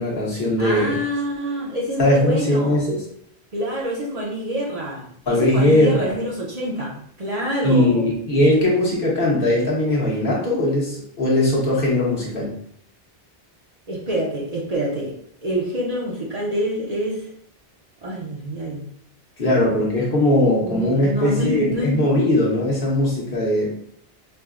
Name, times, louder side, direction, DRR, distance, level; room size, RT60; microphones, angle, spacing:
voice 1, 0.0-1.0 2.0-3.0 5.3-6.1 7.6-12.5 19.4-23.7, left 1 dB, 60° left, -4 dB, 1.2 m, -19 dB
voice 2, 0.6-2.8 3.5-8.0 13.9-15.1 15.4-17.3 18.0-18.9 20.6-22.1, equal, 45° right, -4 dB, 0.7 m, -26 dB
4.6 x 2.1 x 2.4 m, 0.67 s
omnidirectional pair, 1.0 m